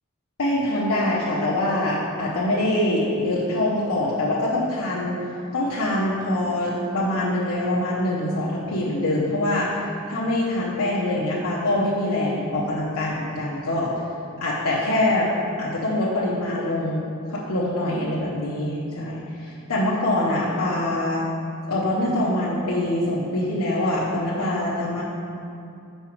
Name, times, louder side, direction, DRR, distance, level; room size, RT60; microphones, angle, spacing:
voice 1, 0.4-5.2 5.5-9.8 10.1-13.9 14.4-15.3 15.6-17.0 17.3-21.3 21.7-25.0, left 1 dB, 75° left, -7 dB, 0.8 m, -24 dB
5.6 x 4.8 x 4.5 m, 2.6 s
head